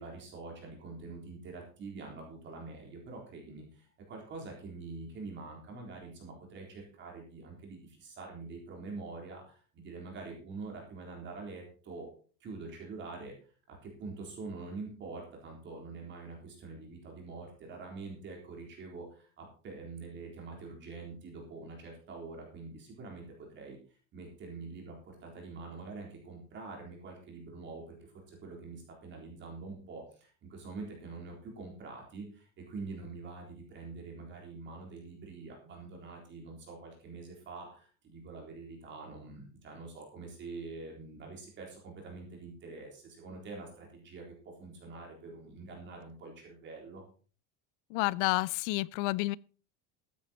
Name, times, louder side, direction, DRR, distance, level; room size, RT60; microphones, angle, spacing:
voice 1, 0.0-12.1 12.4-13.4 13.7-23.8 24.1-28.0 28.3-47.0, right 3 dB, 30° right, 3.9 m, -45 dB
voice 2, 47.9-49.4, left 21 dB, 80° left, 0.6 m, -30 dB
14.5 x 9.3 x 4.4 m
cardioid pair, 180°, 36 cm